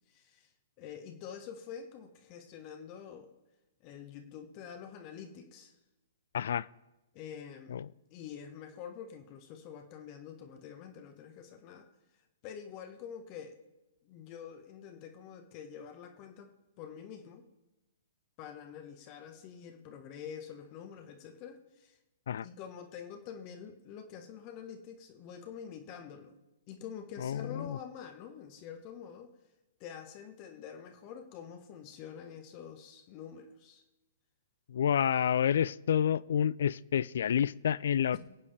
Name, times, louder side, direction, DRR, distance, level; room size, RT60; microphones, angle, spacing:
voice 1, 0.1-0.5 0.8-3.3 3.8-5.7 7.1-7.8 8.1-11.9 12.4-13.6 14.0-16.5 16.8-17.4 18.4-22.0 22.4-26.4 26.7-29.3 29.8-33.8 38.1-38.2, left 8 dB, 35° left, 1.1 m, -46 dB
voice 2, 6.3-6.7 7.7-7.9 22.3-22.5 27.2-27.8 34.7-38.2, left 9 dB, 60° left, 0.3 m, -29 dB
24.0 x 8.3 x 3.4 m
figure-of-eight pair, 120°, 0 cm